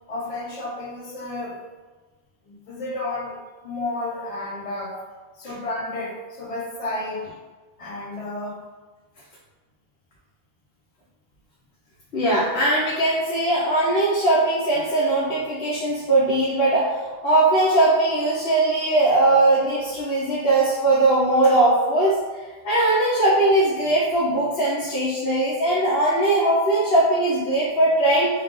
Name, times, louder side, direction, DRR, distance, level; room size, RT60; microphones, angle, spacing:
voice 1, 0.1-1.6 2.4-5.0 5.4-7.3 7.8-8.6, left 2 dB, 40° left, -2 dB, 0.7 m, -32 dB
voice 2, 12.1-22.2 22.6-28.3, right 2 dB, 75° left, -7 dB, 1.0 m, -20 dB
3.3 x 2.3 x 3.6 m, 1.3 s
omnidirectional pair, 1.0 m